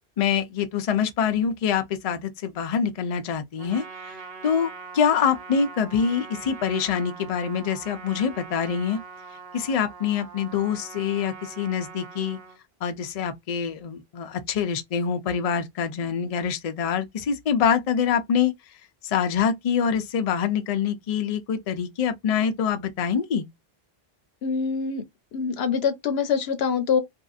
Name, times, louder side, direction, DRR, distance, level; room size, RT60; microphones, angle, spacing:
voice 1, 0.2-4.2 4.4-9.0 9.5-12.4 12.8-18.5 19.0-23.5, left 7 dB, 50° left, 0.4 m, -25 dB
Trumpet, 3.6-12.6, right 5 dB, 70° right, 1.0 m, -42 dB
voice 2, 24.4-25.0 25.3-27.0, left 6 dB, 80° left, 0.9 m, -24 dB
2.7 x 2.4 x 2.3 m
omnidirectional pair, 1.0 m